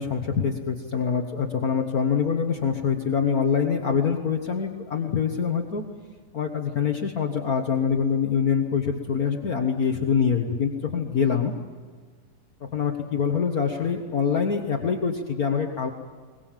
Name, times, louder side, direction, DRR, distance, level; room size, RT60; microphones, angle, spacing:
voice 1, 0.0-5.8 6.3-11.5 12.7-15.9, left 6 dB, 75° left, 3 dB, 0.8 m, -25 dB
22.0 x 21.0 x 7.4 m, 1.5 s
omnidirectional pair, 3.8 m